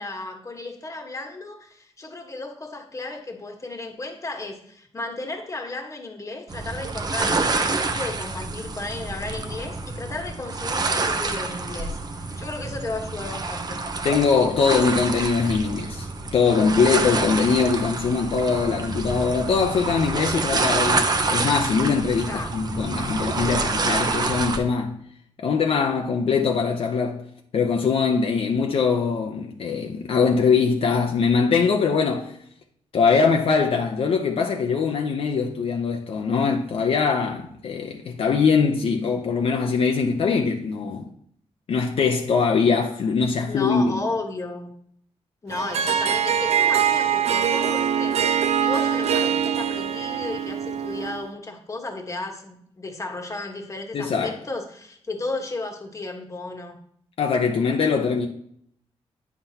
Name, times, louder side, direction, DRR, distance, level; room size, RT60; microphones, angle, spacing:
voice 1, 0.0-12.0 12.4-13.8 22.3-22.5 43.5-44.7 45.4-56.8, left 2 dB, 30° left, 1.3 m, -34 dB
sound 1, 6.5-24.6, right 3 dB, 40° right, 0.8 m, -27 dB
voice 2, 14.0-16.1 16.3-25.0 25.4-27.3 27.5-32.4 32.9-41.1 41.7-44.0 53.9-54.3 57.2-58.3, left 5 dB, 60° left, 0.7 m, -22 dB
Harp, 45.5-51.3, right 8 dB, 75° right, 0.5 m, -23 dB
9.4 x 5.8 x 2.8 m
cardioid pair, 95°, 11 cm